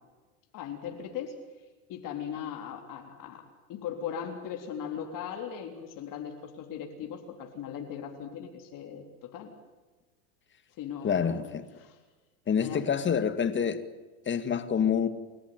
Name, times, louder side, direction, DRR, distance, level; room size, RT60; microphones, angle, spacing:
voice 1, 0.5-1.3 1.9-3.4 3.7-9.5 10.8-11.5 11.8-12.0 12.5-12.9, left 8 dB, 45° left, 3.7 m, -38 dB
voice 2, 11.0-11.7 12.5-13.8 14.3-15.1, left 7 dB, 25° left, 2.0 m, -27 dB
29.5 x 14.0 x 9.5 m
supercardioid pair, 115°, 44 cm